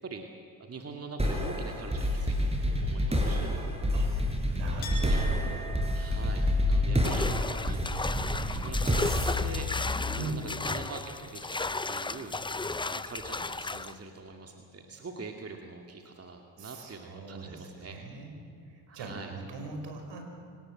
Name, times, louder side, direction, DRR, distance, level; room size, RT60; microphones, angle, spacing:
voice 1, 0.6-3.6 5.1-5.3 5.9-7.4 7.6-12.4 12.9-18.0 18.9-19.3, right 3 dB, 30° right, 3 dB, 2.3 m, -44 dB
sound 1, 1.2-10.6, left 1 dB, 15° right, 4.9 m, -29 dB
voice 2, 4.5-5.5 6.9-7.2 10.2-10.4 16.6-18.4 18.7-20.3, right 3 dB, 65° right, 4 dB, 5.7 m, -40 dB
Chink clink, 4.8-10.3 10.6-11.5, equal, 80° left, 5.2 m, -47 dB
sound 2, 7.0-13.9, left 3 dB, 10° left, 0.7 m, -34 dB
25.0 x 19.0 x 7.8 m, 2.4 s
supercardioid pair, 70°, 47 cm